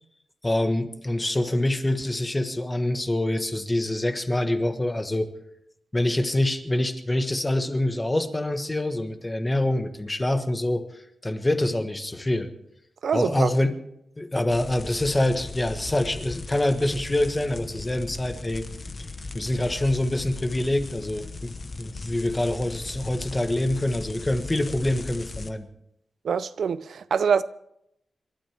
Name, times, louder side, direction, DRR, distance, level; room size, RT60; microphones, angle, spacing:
voice 1, 0.4-5.3 5.9-12.5 13.1-13.7 14.2-18.6 19.3-25.7, left 1 dB, 15° left, 1.3 m, -25 dB
voice 2, 13.0-13.5 26.2-27.4, right 6 dB, 75° right, 0.5 m, -24 dB
sound 1, 14.5-25.5, left 3 dB, 35° left, 1.1 m, -38 dB
28.0 x 12.5 x 3.5 m
wide cardioid pair, 125°, 0 cm